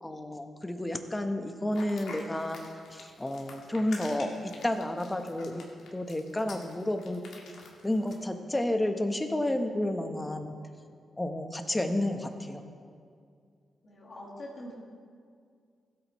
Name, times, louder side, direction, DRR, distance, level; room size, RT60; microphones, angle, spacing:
voice 1, 0.0-5.7 5.9-7.2 7.8-10.5 11.2-12.6, left 1 dB, 15° left, 6 dB, 1.1 m, -31 dB
sound 1, 1.7-8.2, left 3 dB, 80° left, 1.7 m, -48 dB
voice 2, 13.8-14.8, left 1 dB, 55° left, -5 dB, 2.1 m, -43 dB
15.5 x 8.3 x 3.1 m, 2.2 s
cardioid pair, 60°, 0 cm